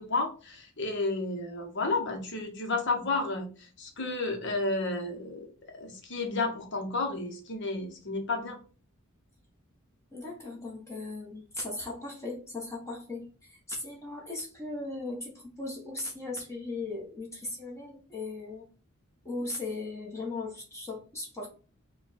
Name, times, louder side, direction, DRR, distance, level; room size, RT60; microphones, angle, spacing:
voice 1, 0.0-3.5 3.8-5.5 5.8-8.6, left 3 dB, 55° left, 3 dB, 0.9 m, -31 dB
voice 2, 10.1-18.7 19.2-21.5, left 2 dB, 15° left, -4 dB, 1.1 m, -38 dB
4.8 x 2.3 x 4.1 m, 0.38 s
head